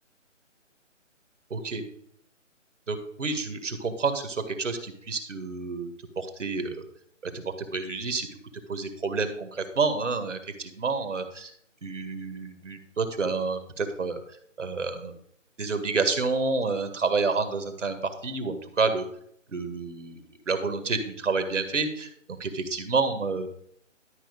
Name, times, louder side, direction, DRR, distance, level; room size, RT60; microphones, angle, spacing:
voice 1, 1.5-1.8 2.9-6.8 7.3-8.3 8.7-11.5 11.8-14.2 14.6-15.1 15.6-19.0 19.5-22.1 22.4-23.5, right 4 dB, 70° right, 8 dB, 2.0 m, -29 dB
12.0 x 5.7 x 5.2 m, 0.67 s
figure-of-eight pair, 145°, 38 cm